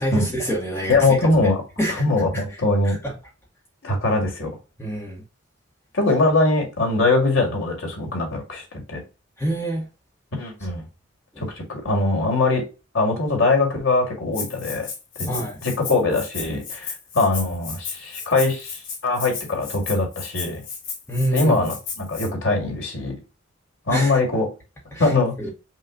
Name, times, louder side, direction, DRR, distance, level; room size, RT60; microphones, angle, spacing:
voice 1, 0.0-1.1 1.8-2.4 2.8-3.0 4.8-5.2 9.4-9.8 15.2-15.6 21.1-21.6 23.9-24.2 24.9-25.1 25.4-25.5, right 1 dB, 10° left, 1.0 m, -26 dB
voice 2, 0.9-1.6 1.9-3.0 3.8-4.5 5.9-8.6 8.9-9.0 10.4-10.8 11.4-12.6 12.9-14.9 15.2-15.3 15.6-20.6 21.3-23.2 23.9-24.5 25.0-25.3, left 2 dB, 70° left, 2.0 m, -22 dB
Rattle (instrument), 14.3-22.3, left 6 dB, 90° left, 2.9 m, -34 dB
5.7 x 2.3 x 3.7 m
head